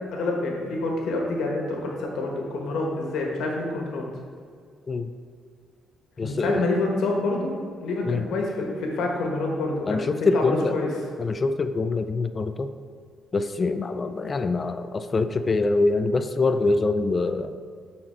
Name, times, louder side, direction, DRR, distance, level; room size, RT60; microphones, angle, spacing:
voice 1, 0.1-4.1 6.2-7.5 7.8-10.9, left 2 dB, 80° left, 0 dB, 1.4 m, -27 dB
voice 2, 6.2-6.7 8.0-8.3 9.9-10.7 11.2-12.7 13.3-17.6, left 3 dB, 35° left, 10 dB, 0.4 m, -24 dB
8.7 x 4.3 x 4.4 m, 2.1 s
cardioid pair, 90°, 0 cm